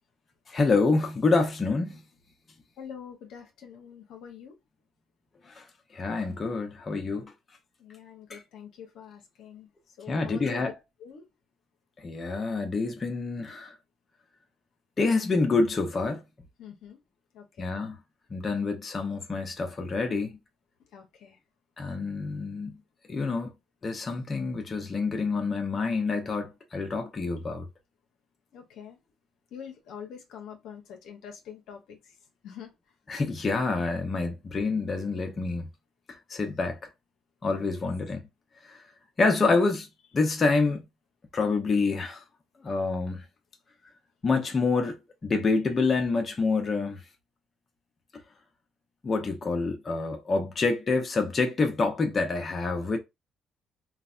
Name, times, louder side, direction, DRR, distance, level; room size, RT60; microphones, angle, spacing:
voice 1, 0.5-2.0 5.6-5.7 5.9-7.3 8.3-8.4 10.1-10.7 12.0-13.7 15.0-16.2 17.6-18.0 18.3-20.3 21.8-22.7 23.1-23.5 23.8-27.7 33.1-35.7 36.3-36.8 37.4-38.2 38.7-38.8 39.2-39.9 40.1-40.8 41.3-42.2 42.6-43.2 44.2-45.0 45.2-47.0 49.0-53.0, left 3 dB, 35° left, 0.8 m, -27 dB
voice 2, 2.8-4.6 7.8-10.7 11.0-11.3 16.6-17.0 17.3-17.7 20.9-21.4 28.5-29.0 29.5-32.2 32.4-32.7 37.7-37.8, left 7 dB, 80° left, 0.7 m, -45 dB
3.2 x 2.1 x 2.4 m
cardioid pair, 85°, 0 cm